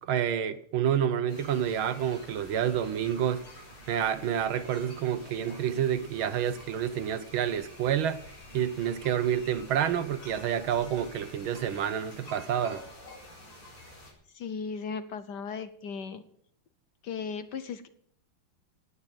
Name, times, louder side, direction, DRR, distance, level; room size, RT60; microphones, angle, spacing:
voice 1, 0.0-3.4 3.9-8.2 8.5-12.8, right 9 dB, 70° right, 1.6 m, -28 dB
sound 1, 1.3-14.1, left 1 dB, 75° left, 5.8 m, -49 dB
voice 2, 14.3-16.2 17.0-17.9, left 5 dB, 60° left, 1.3 m, -36 dB
18.0 x 7.1 x 9.0 m
omnidirectional pair, 2.4 m